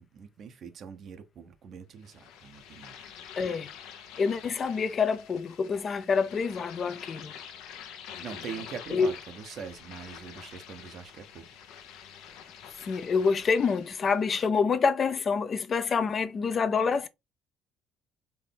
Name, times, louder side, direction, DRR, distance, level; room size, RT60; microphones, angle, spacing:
voice 1, 0.0-3.0 8.2-11.4, right 6 dB, 60° right, 0.9 m, -43 dB
sound 1, 2.0-14.3, left 8 dB, 85° left, 0.9 m, -47 dB
voice 2, 3.4-3.7 4.2-7.3 8.9-9.1 12.8-17.1, left 5 dB, 45° left, 0.6 m, -27 dB
4.6 x 2.7 x 3.4 m
supercardioid pair, 80°, 0 cm